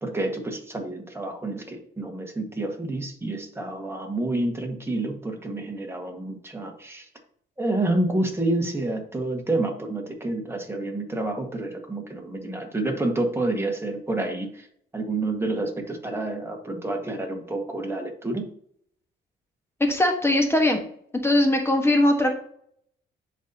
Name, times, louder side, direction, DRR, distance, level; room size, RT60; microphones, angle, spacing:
voice 1, 0.0-7.1 7.6-14.7 14.9-18.5, right 2 dB, 10° right, 2 dB, 1.7 m, -28 dB
voice 2, 19.8-20.8 21.2-22.4, left 1 dB, 10° left, 3 dB, 1.4 m, -20 dB
10.0 x 4.1 x 2.9 m, 0.63 s
cardioid pair, 90°, 20 cm